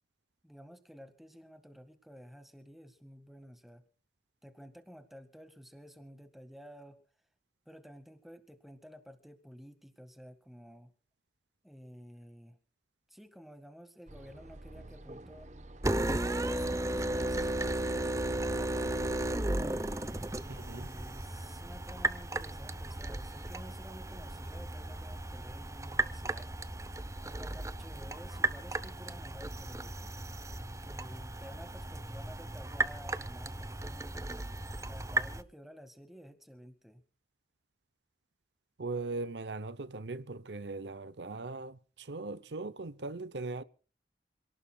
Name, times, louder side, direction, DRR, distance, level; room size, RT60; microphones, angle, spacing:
voice 1, 0.4-3.8 4.4-7.0 7.7-10.9 11.6-12.6 13.1-15.5 16.4-19.6 20.4-26.5 27.2-30.0 30.8-37.0, equal, ahead, 1.9 m, -52 dB
sound 1, 14.1-29.9, right 1 dB, 45° right, 1.1 m, -52 dB
sound 2, 15.8-35.4, right 2 dB, 20° right, 0.8 m, -35 dB
voice 2, 20.6-20.9 38.8-43.6, right 3 dB, 85° right, 0.8 m, -39 dB
28.0 x 18.5 x 2.4 m
head